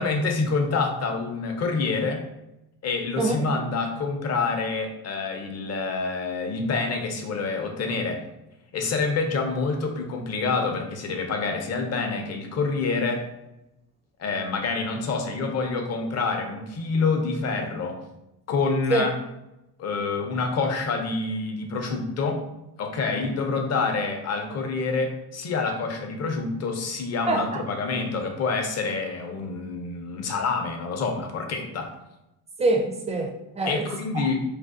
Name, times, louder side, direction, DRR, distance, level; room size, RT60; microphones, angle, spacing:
voice 1, 0.0-2.2 2.8-8.2 8.7-13.3 14.2-18.0 18.5-19.1 19.8-22.4 22.8-31.9 33.7-34.4, left 4 dB, 40° left, 4 dB, 0.6 m, -27 dB
voice 2, 27.3-27.6 32.6-34.3, right 2 dB, 15° right, 2 dB, 0.4 m, -25 dB
2.5 x 2.2 x 2.4 m, 0.91 s
supercardioid pair, 90°, 41 cm